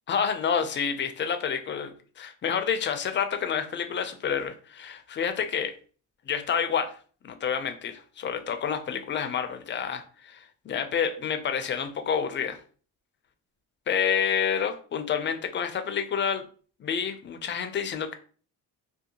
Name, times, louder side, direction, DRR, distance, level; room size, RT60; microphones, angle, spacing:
voice 1, 0.1-5.7 6.3-7.0 7.2-12.6 13.9-16.4 16.8-18.1, left 7 dB, 30° left, 8 dB, 0.4 m, -29 dB
2.6 x 2.1 x 2.8 m, 0.42 s
cardioid pair, 85°, 39 cm